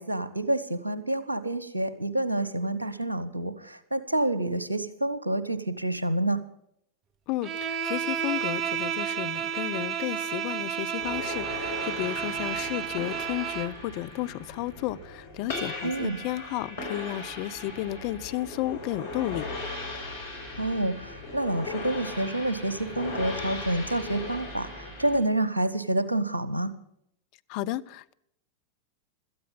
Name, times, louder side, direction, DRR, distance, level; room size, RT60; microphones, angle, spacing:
voice 1, 0.0-6.4 15.8-16.2 20.6-26.7, right 1 dB, 80° right, 1.1 m, -28 dB
voice 2, 7.3-19.5 27.5-28.1, left 15 dB, 45° left, 0.5 m, -33 dB
Bowed string instrument, 7.4-13.8, right 8 dB, 30° right, 0.8 m, -31 dB
sound 1, 11.0-25.2, left 2 dB, 65° left, 5.2 m, -38 dB
17.0 x 13.0 x 5.5 m
figure-of-eight pair, 90°, 0 cm